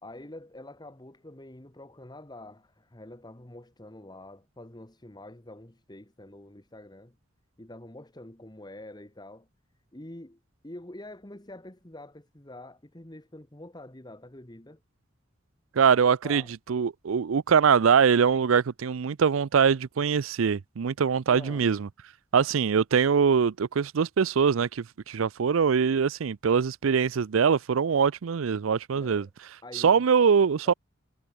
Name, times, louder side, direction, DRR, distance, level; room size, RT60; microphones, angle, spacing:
voice 1, 0.0-7.2 7.6-9.5 9.9-14.8 16.2-16.5 21.3-21.7 28.9-29.3 29.6-30.0 30.6-30.7, left 1 dB, 20° left, 1.5 m, -46 dB
voice 2, 15.8-16.4 16.7-21.9 22.3-29.3 29.7-30.7, right 6 dB, 90° right, 0.5 m, -23 dB
head